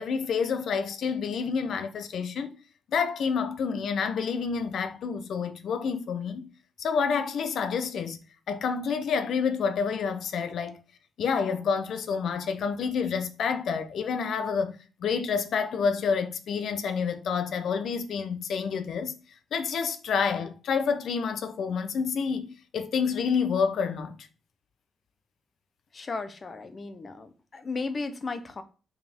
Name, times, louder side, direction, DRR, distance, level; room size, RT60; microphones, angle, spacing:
voice 1, 0.0-2.6 2.9-6.5 6.8-10.8 11.2-19.2 19.5-24.3, left 6 dB, 65° left, 0.7 m, -28 dB
voice 2, 25.9-28.6, left 3 dB, 30° left, 0.8 m, -35 dB
5.6 x 4.8 x 3.6 m
wide cardioid pair, 160°, 0 cm